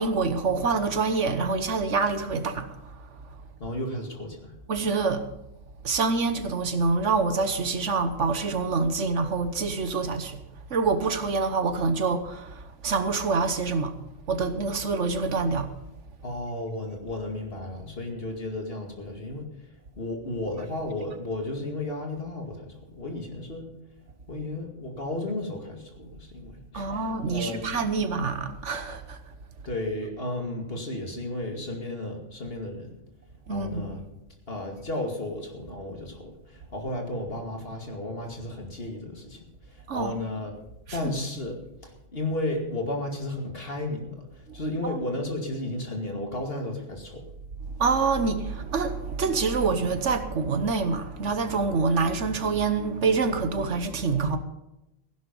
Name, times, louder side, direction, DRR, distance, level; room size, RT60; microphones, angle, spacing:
voice 1, 0.0-3.2 4.7-5.3 5.8-10.4 10.7-13.9 14.3-15.7 26.7-29.2 33.5-34.0 39.9-40.1 40.9-41.0 44.5-44.6 44.8-45.1 47.8-54.4, right 4 dB, 65° right, 1.4 m, -26 dB
voice 2, 3.6-4.5 16.2-19.5 20.0-23.7 24.3-27.8 29.6-32.9 33.5-34.0 34.5-39.4 39.7-40.5 40.9-44.2 44.5-47.2, left 1 dB, 45° left, 2.5 m, -33 dB
15.5 x 11.0 x 5.4 m
omnidirectional pair, 1.4 m